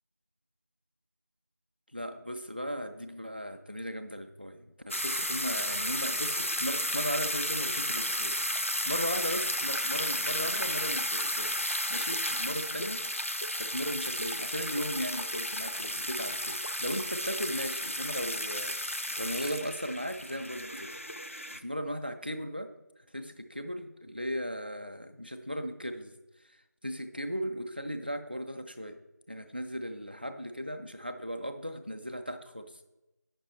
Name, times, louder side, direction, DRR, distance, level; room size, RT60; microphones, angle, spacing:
voice 1, 1.9-8.4 8.9-13.0 13.6-18.7 19.2-20.9 21.5-22.7 23.1-26.1 26.5-26.6 26.8-29.0 29.3-32.7, equal, 30° right, 7 dB, 0.5 m, -37 dB
sound 1, 4.9-21.6, equal, 45° left, 0.4 m, -33 dB
8.8 x 6.0 x 4.0 m, 0.99 s
figure-of-eight pair, 175°, 10 cm